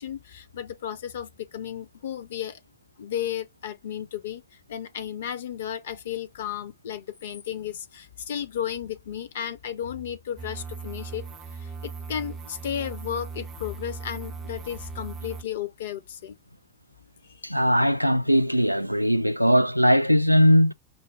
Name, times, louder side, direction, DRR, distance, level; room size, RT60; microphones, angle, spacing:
voice 1, 0.0-2.6 3.0-4.4 4.7-11.3 11.6-16.4 17.5-17.6, left 9 dB, 60° left, 0.8 m, -34 dB
sound 1, 10.4-15.4, right 4 dB, 25° right, 0.5 m, -38 dB
voice 2, 17.4-20.7, equal, 90° right, 0.3 m, -20 dB
5.5 x 2.1 x 3.4 m
figure-of-eight pair, 90°, 0 cm